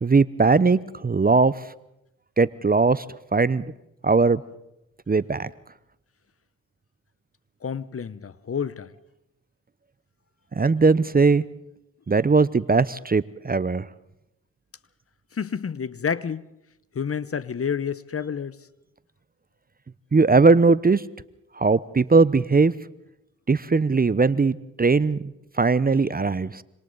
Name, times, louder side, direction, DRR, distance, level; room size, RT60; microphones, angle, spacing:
voice 1, 0.0-1.6 2.4-3.0 3.3-3.6 4.0-4.4 5.1-5.5 10.5-11.4 12.1-13.9 20.1-21.1 21.6-22.7 23.5-26.6, right 4 dB, 25° right, 0.8 m, -19 dB
voice 2, 7.6-8.9 15.3-16.5 16.9-18.6, left 7 dB, 35° left, 0.9 m, -29 dB
26.5 x 26.0 x 4.0 m
hypercardioid pair, 40°, 38 cm